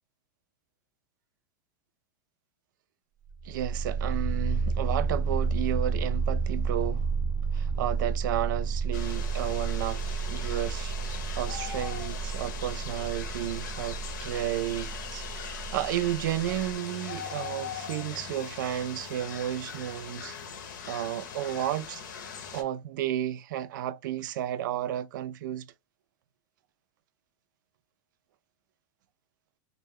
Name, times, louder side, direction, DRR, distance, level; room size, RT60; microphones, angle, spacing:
sound 1, 3.3-16.8, right 4 dB, 30° left, 0.5 m, -31 dB
voice 1, 3.4-7.1 7.5-22.0 22.5-25.7, right 12 dB, 70° right, 0.4 m, -32 dB
sound 2, 8.9-22.6, left 6 dB, 70° left, 0.7 m, -40 dB
2.2 x 2.1 x 3.3 m
supercardioid pair, 140°, 11 cm